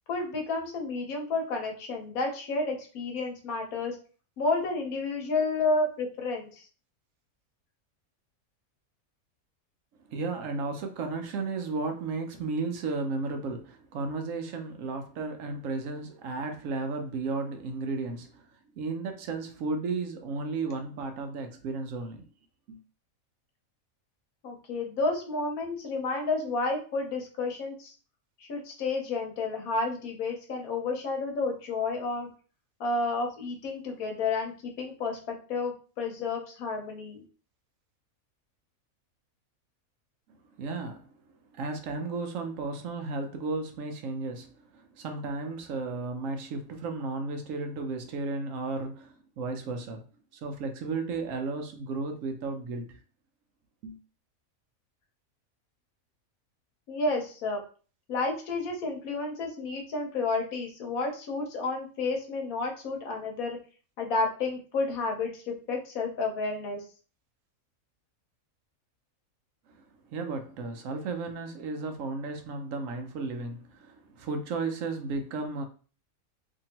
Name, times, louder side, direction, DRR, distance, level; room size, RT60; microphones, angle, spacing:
voice 1, 0.1-4.0 4.4-6.6 24.4-27.9 28.4-32.3 32.8-37.2 56.9-57.6 58.1-63.6 64.0-66.8, left 3 dB, 85° left, 1.3 m, -31 dB
voice 2, 10.1-18.5 18.7-22.3 22.7-22.8 40.6-41.1 41.5-50.0 50.3-53.0 53.8-54.0 69.7-75.6, right 3 dB, 70° right, 0.9 m, -34 dB
2.8 x 2.7 x 2.8 m
omnidirectional pair, 1.5 m